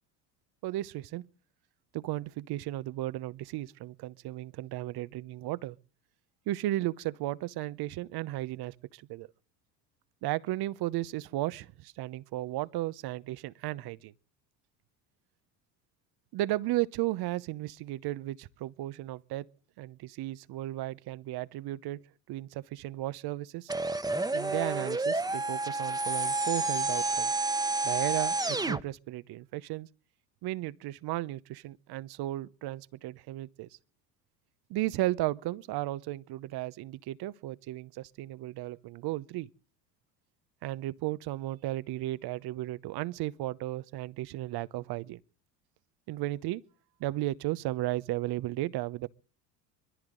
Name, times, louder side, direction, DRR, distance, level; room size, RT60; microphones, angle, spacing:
voice 1, 0.6-1.3 1.9-5.8 6.5-9.3 10.2-14.1 16.3-19.5 19.8-22.0 22.3-23.7 24.3-27.3 27.8-29.9 30.4-33.7 34.7-39.5 40.6-45.2 46.1-46.6 47.0-49.1, right 16 dB, 50° right, 0.9 m, -34 dB
sound 1, 23.7-28.8, right 2 dB, 10° right, 1.1 m, -30 dB
22.5 x 14.5 x 3.8 m
hypercardioid pair, 75°, 50 cm